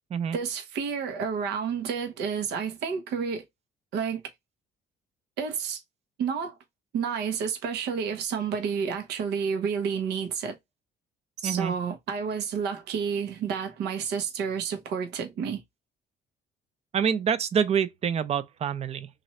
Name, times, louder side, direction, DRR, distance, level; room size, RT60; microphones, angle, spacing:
voice 1, 0.3-3.4 3.9-4.2 5.4-5.8 6.2-6.6 6.9-10.6 11.4-15.6, right 6 dB, 80° right, 1.0 m, -30 dB
voice 2, 11.4-11.7 16.9-19.1, right 7 dB, 40° right, 0.5 m, -26 dB
3.1 x 2.6 x 4.2 m
cardioid pair, 110°, 17 cm